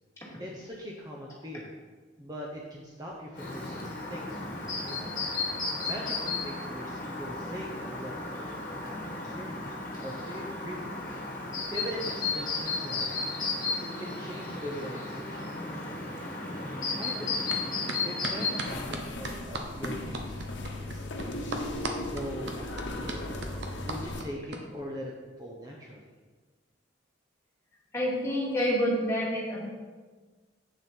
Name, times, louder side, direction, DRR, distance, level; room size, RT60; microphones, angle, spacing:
voice 1, 0.4-1.7 2.2-5.2 5.8-8.5 8.8-9.0 9.2-9.7 10.0-11.0 11.7-13.3 13.8-16.2 16.9-17.6 18.0-21.4 22.1-23.3 23.8-26.0, equal, 20° right, -3 dB, 0.8 m, -41 dB
Chirp tweet, 3.4-18.8, left 3 dB, 45° left, 1.5 m, -34 dB
sound 1, 17.5-17.6 17.9-24.6, right 2 dB, 65° right, 1.0 m, -36 dB
sound 2, 18.7-24.2, left 1 dB, 75° left, 1.0 m, -37 dB
voice 2, 27.9-29.7, equal, 15° left, -6 dB, 2.4 m, -28 dB
8.2 x 6.9 x 4.5 m, 1.4 s
head